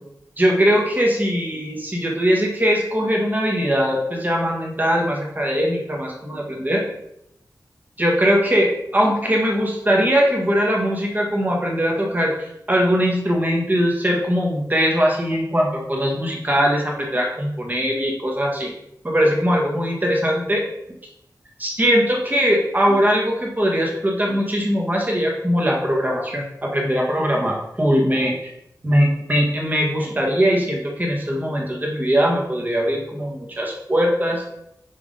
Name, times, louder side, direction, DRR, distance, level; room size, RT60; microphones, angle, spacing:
voice 1, 0.4-6.8 8.0-18.7 19.0-20.6 21.6-28.3 28.8-34.4, equal, 25° right, -1 dB, 1.6 m, -20 dB
6.2 x 5.1 x 3.7 m, 0.79 s
wide cardioid pair, 105°, 7 cm